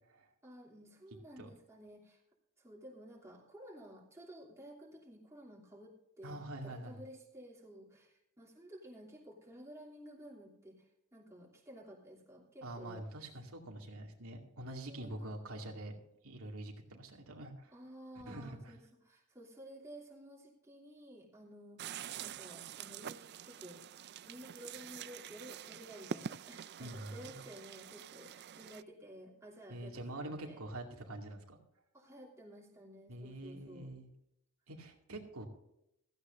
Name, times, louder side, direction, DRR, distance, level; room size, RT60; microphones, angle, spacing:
voice 1, 0.4-2.2 2.6-13.1 14.9-15.3 17.7-23.8 24.2-30.6 31.9-33.9, right 1 dB, 15° right, -3 dB, 2.9 m, -53 dB
voice 2, 6.2-7.0 12.6-16.0 16.2-17.7 18.3-18.7 26.8-27.4 29.7-31.6 33.1-34.1 34.7-35.5, right 1 dB, 85° right, 1 dB, 2.4 m, -45 dB
sound 1, 21.8-28.8, right 8 dB, 50° right, 0.4 m, -46 dB
16.0 x 14.5 x 2.6 m, 0.81 s
head